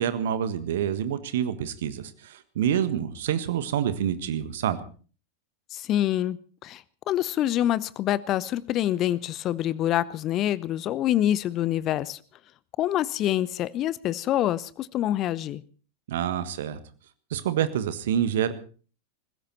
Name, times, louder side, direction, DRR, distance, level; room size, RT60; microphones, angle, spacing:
voice 1, 0.0-4.8 16.1-16.8 17.3-18.5, right 9 dB, 55° right, 13 dB, 1.6 m, -27 dB
voice 2, 5.7-12.2 12.8-15.6, left 12 dB, 35° left, 21 dB, 0.7 m, -26 dB
20.0 x 16.0 x 4.3 m, 0.39 s
figure-of-eight pair, 90°, 0 cm